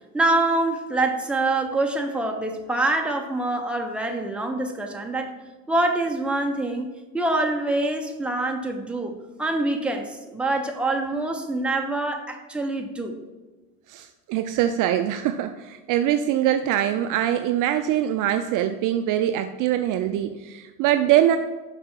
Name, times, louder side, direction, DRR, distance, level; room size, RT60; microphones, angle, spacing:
voice 1, 0.1-5.3 5.7-6.9 7.1-9.1 9.4-13.2, right 2 dB, ahead, 2 dB, 0.8 m, -25 dB
voice 2, 13.9-21.4, right 11 dB, 45° right, 8 dB, 0.5 m, -23 dB
5.9 x 5.6 x 4.5 m, 1.2 s
hypercardioid pair, 90°, 44 cm